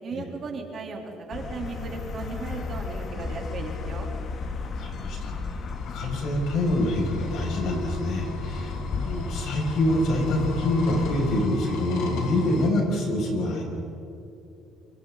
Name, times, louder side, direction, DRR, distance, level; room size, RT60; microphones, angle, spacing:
voice 1, 0.0-4.1, right 4 dB, 45° right, 0 dB, 3.8 m, -36 dB
sound 1, 1.3-11.5, left 4 dB, 45° left, 1.7 m, -34 dB
voice 2, 4.6-13.6, left 1 dB, 65° left, 0 dB, 7.1 m, -26 dB
sound 2, 5.8-12.7, left 2 dB, 85° left, 4.0 m, -35 dB
28.5 x 25.0 x 4.1 m, 2.8 s
cardioid pair, 115°, 0 cm